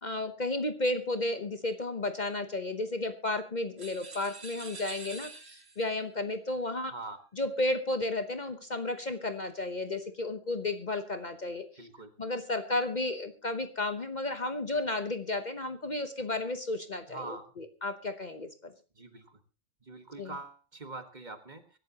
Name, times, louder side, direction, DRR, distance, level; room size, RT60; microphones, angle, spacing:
voice 1, 0.0-6.9 7.4-11.6 12.2-18.7 20.2-20.3, left 2 dB, 40° left, 8 dB, 1.1 m, -33 dB
sound 1, 3.8-5.9, right 3 dB, 60° right, 1.9 m, -46 dB
voice 2, 11.8-12.1 17.1-17.5 18.9-19.4 19.8-21.8, right 3 dB, 40° right, 7 dB, 1.7 m, -43 dB
24.0 x 12.0 x 2.9 m, 0.33 s
omnidirectional pair, 1.3 m